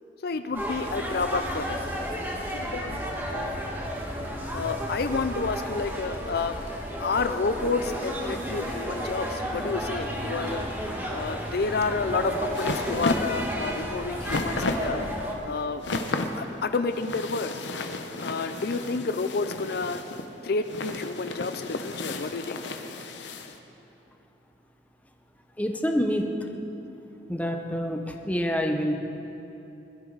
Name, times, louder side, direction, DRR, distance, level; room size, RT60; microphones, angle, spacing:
voice 1, 0.2-1.9 2.5-3.6 4.5-6.6 7.0-10.7 11.1-15.1 15.4-15.8 16.3-17.6 18.2-20.0 20.4-22.6, left 4 dB, 60° left, 9 dB, 0.5 m, -30 dB
sound 1, 0.5-15.3, equal, 10° right, 1.7 m, -32 dB
sound 2, 11.9-23.6, left 2 dB, 75° left, 0.9 m, -33 dB
voice 2, 25.6-26.5 27.3-28.9, equal, 10° left, 3 dB, 0.8 m, -27 dB
21.5 x 12.5 x 4.0 m, 3.0 s
head